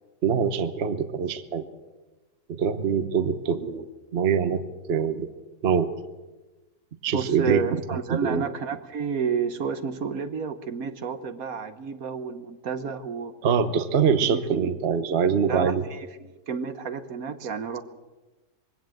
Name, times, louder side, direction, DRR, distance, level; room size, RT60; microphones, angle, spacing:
voice 1, 0.2-1.7 2.5-3.8 4.1-4.6 4.9-5.3 5.6-5.9 7.0-7.6 8.1-8.4 13.4-15.8, right 6 dB, 45° right, 10 dB, 1.1 m, -24 dB
voice 2, 7.1-13.3 14.2-14.4 15.5-16.1 16.5-17.8, right 6 dB, 60° right, 10 dB, 1.4 m, -30 dB
21.5 x 17.0 x 7.8 m, 1.2 s
omnidirectional pair, 1.7 m